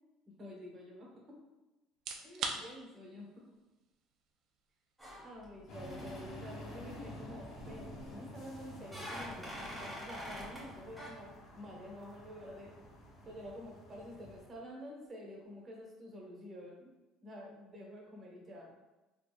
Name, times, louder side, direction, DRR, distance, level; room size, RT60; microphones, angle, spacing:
voice 1, 0.3-1.4 2.2-3.4 5.2-12.7 13.2-16.9 17.2-18.7, equal, 35° right, -2 dB, 1.2 m, -49 dB
sound 1, 1.9-16.7, right 4 dB, 60° right, 0.4 m, -51 dB
sound 2, 5.0-5.6 5.8-6.2 7.6-8.1 8.8-10.7 11.0-11.1, equal, ahead, 1.5 m, -45 dB
sound 3, 5.7-14.5, left 1 dB, 60° left, 0.9 m, -49 dB
4.0 x 3.2 x 2.3 m, 1.1 s
supercardioid pair, 100°, 0 cm